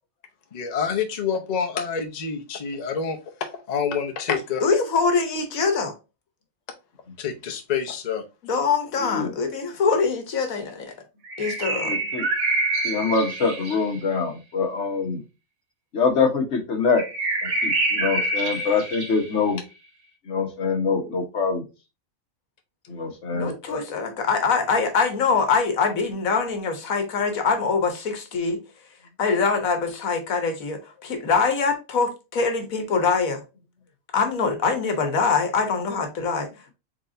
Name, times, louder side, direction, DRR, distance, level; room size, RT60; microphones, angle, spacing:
voice 1, 0.5-4.6 7.2-8.2, left 6 dB, 35° left, 0.8 m, -27 dB
voice 2, 4.6-5.9 8.4-10.9 11.4-11.9 23.3-28.6 29.2-33.4 34.1-36.5, left 5 dB, 80° left, 1.4 m, -23 dB
voice 3, 9.0-9.3 11.8-12.3 12.8-15.2 15.9-17.0 17.4-19.6 20.3-21.6 22.9-23.8, left 4 dB, 60° left, 1.5 m, -24 dB
sound 1, 11.2-14.0 16.9-19.4, right 2 dB, 75° right, 1.7 m, -26 dB
4.6 x 3.9 x 2.6 m
omnidirectional pair, 1.4 m